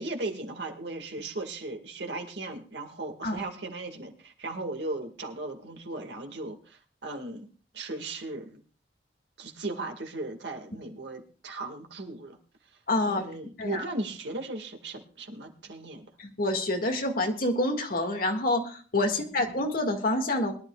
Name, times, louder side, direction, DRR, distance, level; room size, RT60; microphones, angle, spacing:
voice 1, 0.0-7.5 7.7-8.6 9.4-12.4 13.0-16.1 19.1-19.5, right 2 dB, 75° right, 4 dB, 2.1 m, -37 dB
voice 2, 12.9-13.2 13.6-13.8 16.2-20.5, left 2 dB, 55° left, 3 dB, 2.1 m, -27 dB
22.5 x 11.5 x 2.4 m, 0.40 s
head